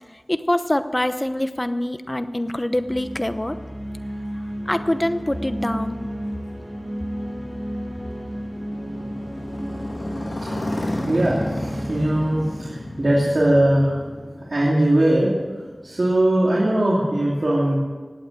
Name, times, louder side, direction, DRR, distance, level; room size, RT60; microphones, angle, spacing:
voice 1, 0.1-3.6 4.7-6.0, left 1 dB, 20° left, 10 dB, 0.9 m, -24 dB
sound 1, 2.7-14.2, equal, 25° right, 4.0 m, -33 dB
Motorcycle, 6.6-16.4, left 1 dB, 60° left, 2.7 m, -33 dB
voice 2, 11.1-13.9 14.5-15.3 15.8-17.8, right 1 dB, 65° right, -6 dB, 2.8 m, -20 dB
16.5 x 8.8 x 7.6 m, 1.4 s
wide cardioid pair, 65°, 0 cm